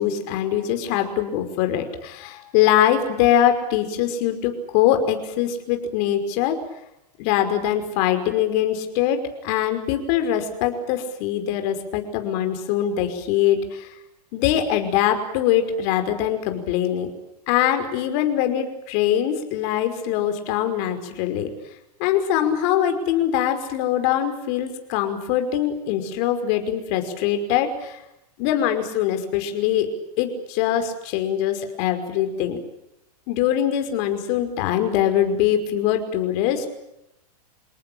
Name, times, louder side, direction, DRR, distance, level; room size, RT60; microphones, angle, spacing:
voice 1, 0.0-6.6 7.2-13.9 14.3-17.1 17.5-21.5 22.0-28.0 28.4-29.9 30.2-32.6 33.3-36.7, left 10 dB, 40° left, 7 dB, 5.5 m, -22 dB
28.5 x 19.0 x 8.9 m, 0.84 s
supercardioid pair, 160°, 21 cm